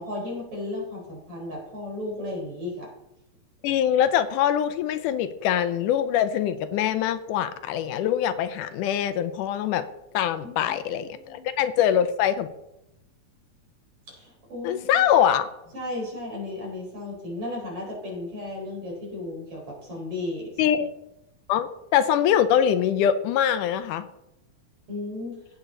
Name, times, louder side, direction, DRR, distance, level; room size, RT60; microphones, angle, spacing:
voice 1, 0.0-2.9 10.4-10.7 11.2-11.5 14.1-15.0 15.7-20.5 24.9-25.5, left 2 dB, 45° right, -2 dB, 4.9 m, -34 dB
voice 2, 3.6-9.8 10.1-12.5 14.6-15.5 20.6-20.9 21.5-24.1, left 10 dB, 85° left, 12 dB, 2.2 m, -23 dB
17.5 x 8.2 x 4.0 m, 0.87 s
omnidirectional pair, 3.7 m